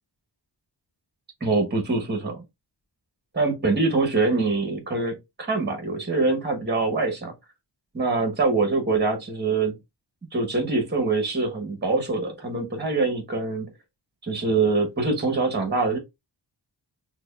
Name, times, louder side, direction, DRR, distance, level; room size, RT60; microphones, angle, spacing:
voice 1, 1.4-2.4 3.3-7.3 7.9-9.8 10.3-13.7 14.2-16.0, right 3 dB, 25° right, 1.1 m, -24 dB
6.0 x 2.3 x 2.3 m
wide cardioid pair, 115°, 42 cm